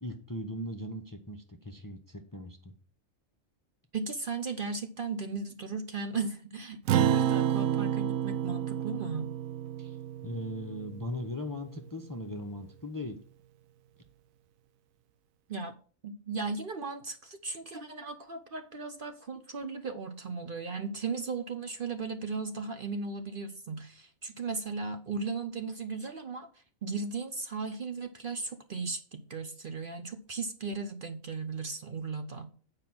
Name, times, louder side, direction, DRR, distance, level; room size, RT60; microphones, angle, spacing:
voice 1, 0.0-2.7 9.8-10.0 10.2-13.2, left 1 dB, 20° left, 5 dB, 0.7 m, -39 dB
voice 2, 3.9-9.3 15.5-15.8 16.0-26.5 26.8-32.5, right 4 dB, 45° right, 7 dB, 0.9 m, -36 dB
Acoustic guitar, 6.9-11.6, right 10 dB, 85° right, 1.0 m, -30 dB
9.1 x 4.9 x 6.0 m, 0.41 s
omnidirectional pair, 1.4 m